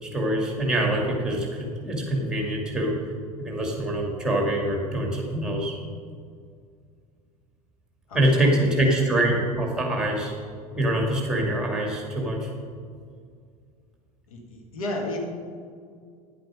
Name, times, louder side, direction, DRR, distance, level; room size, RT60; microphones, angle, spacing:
voice 1, 0.0-3.0 3.4-5.8 8.1-10.3 10.8-12.5, right 1 dB, 5° right, -1 dB, 2.4 m, -24 dB
voice 2, 8.1-9.1 14.3-15.2, left 1 dB, 65° left, 1 dB, 1.6 m, -32 dB
10.5 x 7.8 x 5.1 m, 2.1 s
figure-of-eight pair, 75°, 20 cm